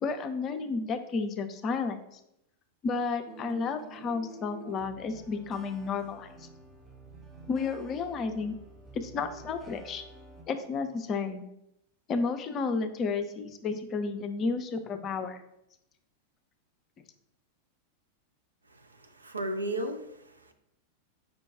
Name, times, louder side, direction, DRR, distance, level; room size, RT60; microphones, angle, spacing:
voice 1, 0.0-2.2 2.8-6.5 7.5-8.5 8.9-10.0 10.5-11.4 12.1-15.4, left 4 dB, 30° left, 8 dB, 0.4 m, -32 dB
sound 1, 3.3-10.4, right 2 dB, 20° right, 0.7 m, -49 dB
voice 2, 18.7-20.5, right 1 dB, 80° right, 5 dB, 0.5 m, -35 dB
5.1 x 2.2 x 4.7 m, 0.82 s
figure-of-eight pair, 90°, 0 cm